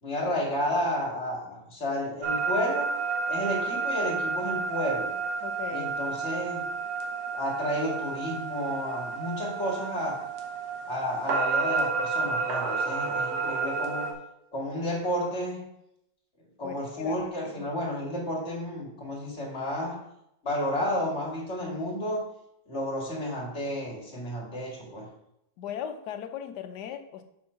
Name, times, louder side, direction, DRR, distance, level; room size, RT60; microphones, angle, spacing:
voice 1, 0.0-2.9 3.3-5.1 5.7-6.6 7.3-10.2 10.9-14.1 14.5-15.6 16.6-20.0 20.4-22.2 22.7-25.1, equal, 35° left, -2 dB, 2.2 m, -31 dB
sound 1, 2.2-14.1, right 4 dB, 60° right, 1.6 m, -30 dB
voice 2, 5.4-6.3 16.6-17.2 17.6-17.8 25.6-27.2, left 9 dB, 65° left, 7 dB, 1.2 m, -38 dB
7.0 x 4.4 x 5.6 m, 0.80 s
omnidirectional pair, 2.0 m